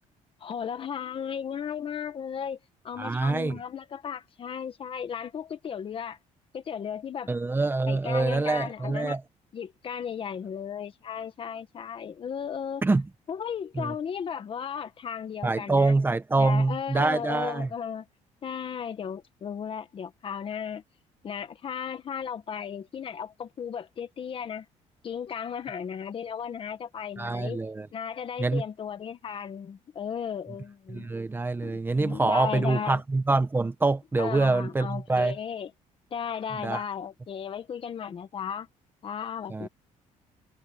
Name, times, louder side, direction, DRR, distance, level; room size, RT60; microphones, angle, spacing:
voice 1, 0.4-2.6 2.8-6.2 6.5-7.3 7.9-9.2 9.5-12.8 13.3-15.9 16.4-18.0 18.4-20.8 21.2-24.7 25.0-27.6 27.9-31.1 31.6-33.0 34.2-35.7 36.1-38.7 39.0-39.7, left 7 dB, 40° left, 1.7 m, -35 dB
voice 2, 3.0-3.6 7.3-9.2 12.8-13.0 13.8-13.9 15.4-17.7 27.2-27.9 28.4-28.6 30.9-35.3 36.6-36.8 39.5-39.7, right 3 dB, 15° right, 1.3 m, -25 dB
cardioid pair, 135°, 14 cm